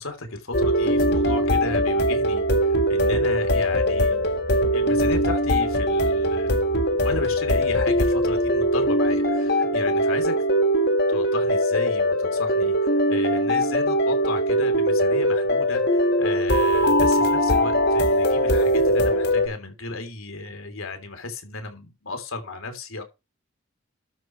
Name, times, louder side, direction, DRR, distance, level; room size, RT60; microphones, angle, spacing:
voice 1, 0.0-4.3 4.7-6.5 7.0-10.4 11.1-23.0, left 3 dB, 85° left, 3.1 m, -34 dB
sound 1, 0.5-19.5, equal, 50° left, 1.6 m, -21 dB
12.5 x 4.6 x 6.1 m
head